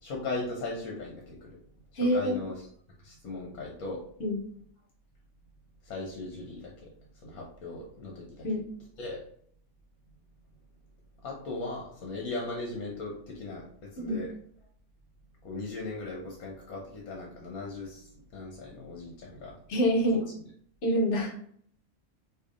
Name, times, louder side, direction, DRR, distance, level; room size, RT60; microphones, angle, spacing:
voice 1, 0.0-1.5 2.1-2.7 3.0-4.0 5.9-6.7 7.2-8.5 9.0-9.2 11.2-14.3 15.4-18.1 18.3-19.5 20.1-20.2, left 2 dB, 80° left, -1 dB, 1.2 m, -38 dB
voice 2, 2.0-2.3 4.2-4.4 8.4-8.7 14.0-14.2 19.7-20.2 20.8-21.3, equal, 60° left, 1 dB, 1.1 m, -26 dB
4.5 x 2.7 x 2.5 m, 0.62 s
omnidirectional pair, 1.5 m